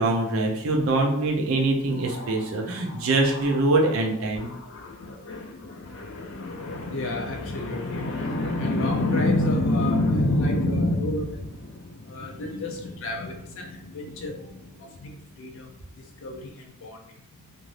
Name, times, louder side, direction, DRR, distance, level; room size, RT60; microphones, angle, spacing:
voice 1, 0.0-4.5, right 2 dB, 75° right, 1 dB, 0.6 m, -23 dB
voice 2, 1.9-3.9 4.4-17.0 17.3-17.4, left 1 dB, 60° left, 1 dB, 0.4 m, -29 dB
2.6 x 2.5 x 3.2 m, 0.79 s
head